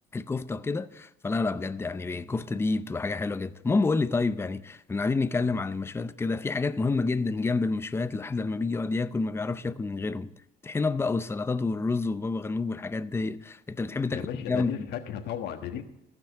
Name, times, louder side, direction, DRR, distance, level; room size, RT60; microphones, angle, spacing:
voice 1, 0.1-10.3 10.6-14.9, left 3 dB, 15° left, 0.5 m, -29 dB
voice 2, 14.1-15.8, left 9 dB, 75° left, 1.4 m, -35 dB
14.5 x 6.0 x 7.5 m
cardioid pair, 110°, 17 cm